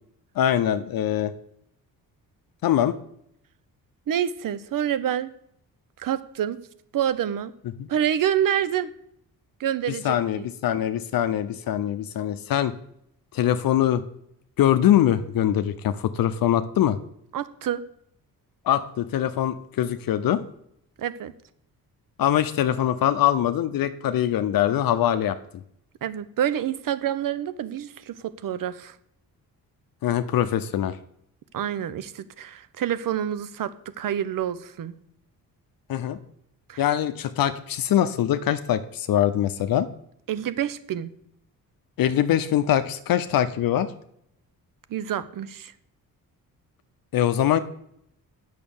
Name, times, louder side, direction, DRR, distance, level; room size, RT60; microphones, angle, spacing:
voice 1, 0.4-1.3 2.6-3.0 7.8-7.9 9.9-12.7 13.3-14.0 14.6-17.0 18.7-20.4 22.2-25.4 30.0-31.0 35.9-36.2 36.8-39.9 42.0-43.9 47.1-47.6, left 11 dB, 70° left, 11 dB, 0.7 m, -23 dB
voice 2, 4.1-5.3 6.0-6.6 6.9-7.5 7.9-8.9 9.6-10.5 17.3-17.8 21.0-21.3 26.0-29.0 31.5-34.9 36.7-36.8 40.3-41.1 44.9-45.7, right 10 dB, 65° right, 14 dB, 0.8 m, -27 dB
8.5 x 6.4 x 7.1 m, 0.72 s
cardioid pair, 100°, 36 cm